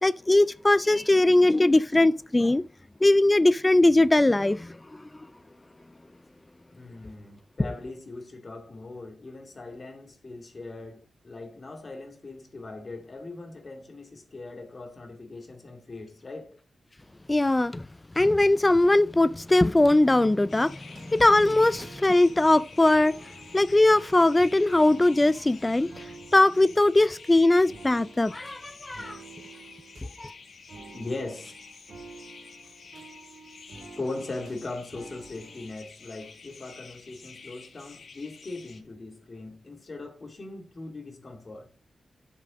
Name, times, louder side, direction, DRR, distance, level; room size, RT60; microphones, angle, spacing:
voice 1, 0.0-2.6 3.0-5.0 17.3-17.9 18.2-23.1 23.5-26.1 26.3-29.2 30.2-30.3, left 2 dB, 20° left, 0.3 m, -21 dB
voice 2, 6.8-16.5 30.9-31.5 33.9-41.7, left 2 dB, 45° left, 2.3 m, -40 dB
sound 1, 20.1-35.7, right 4 dB, 85° right, 2.0 m, -50 dB
sound 2, 20.5-38.8, left 5 dB, 70° left, 1.4 m, -50 dB
7.5 x 6.8 x 4.9 m
wide cardioid pair, 85°, 0 cm